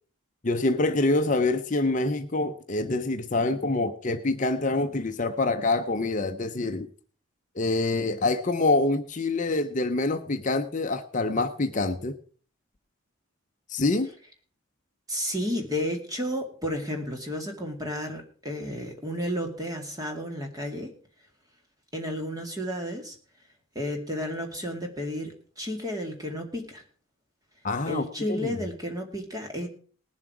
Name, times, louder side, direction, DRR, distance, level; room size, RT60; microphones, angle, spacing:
voice 1, 0.4-6.9 7.6-12.1 13.7-14.1 27.6-28.0 28.3-28.6, left 2 dB, 35° left, 6 dB, 0.7 m, -26 dB
voice 2, 15.1-20.9 21.9-23.1 23.7-26.8 27.9-29.7, left 1 dB, 15° right, 2 dB, 2.1 m, -32 dB
19.5 x 7.4 x 4.8 m, 0.42 s
head